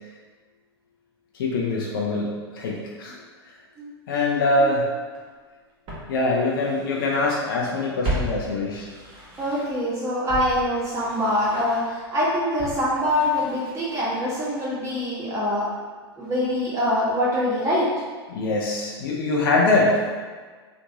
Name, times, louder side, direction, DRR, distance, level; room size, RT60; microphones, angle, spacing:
voice 1, 1.4-2.3 2.5-3.1 4.1-4.9 6.1-8.9 18.3-20.0, left 2 dB, 55° left, -3 dB, 0.6 m, -23 dB
voice 2, 3.8-4.2 4.6-4.7 9.4-15.7 16.2-17.9, left 1 dB, 20° right, -7 dB, 1.3 m, -24 dB
Walk footsteps, 5.1-5.2 5.9-7.3 7.6-9.9 10.3-14.3 14.6-14.7, right 1 dB, 40° right, 1.1 m, -35 dB
3.3 x 3.0 x 2.7 m, 1.5 s
figure-of-eight pair, 95°, 14 cm